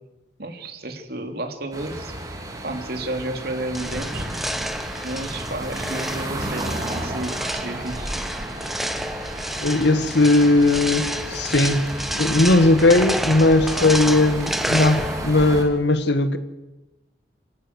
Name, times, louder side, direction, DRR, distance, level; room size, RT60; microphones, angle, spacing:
voice 1, 0.4-2.1 2.6-4.4 5.0-8.1 13.8-14.0, right 1 dB, 60° right, 5 dB, 3.4 m, -32 dB
sound 1, 1.7-15.6, right 1 dB, 20° right, 4.4 m, -34 dB
sound 2, 3.7-15.6, equal, ahead, 1.2 m, -29 dB
voice 2, 9.6-11.8 12.1-16.4, left 2 dB, 75° left, 11 dB, 1.9 m, -18 dB
28.0 x 18.0 x 8.4 m, 1.1 s
head